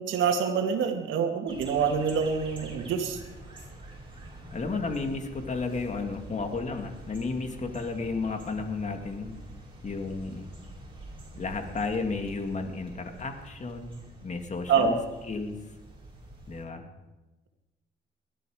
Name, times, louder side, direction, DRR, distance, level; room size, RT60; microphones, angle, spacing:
voice 1, 0.0-3.2 14.7-15.0, right 6 dB, 80° right, 4 dB, 2.2 m, -26 dB
sound 1, 1.5-16.7, right 1 dB, 25° right, 5.6 m, -46 dB
voice 2, 4.5-9.4 9.8-10.5 11.3-15.6 16.5-16.9, left 4 dB, 35° left, 5 dB, 2.2 m, -33 dB
20.0 x 12.5 x 5.0 m, 1.1 s
cardioid pair, 90°, 20 cm